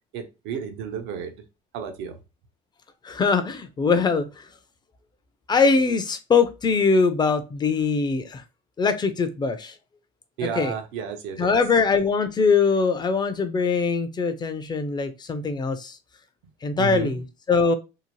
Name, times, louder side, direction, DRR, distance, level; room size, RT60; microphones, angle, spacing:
voice 1, 0.1-1.4 1.7-2.2 10.4-11.6 16.8-17.2, right 7 dB, 75° right, 6 dB, 0.7 m, -32 dB
voice 2, 3.0-4.4 5.5-8.4 8.8-9.7 10.6-10.7 11.4-16.0 16.6-17.7, left 4 dB, 20° left, 11 dB, 0.4 m, -22 dB
2.7 x 2.0 x 3.0 m, 0.27 s
supercardioid pair, 110°, 20 cm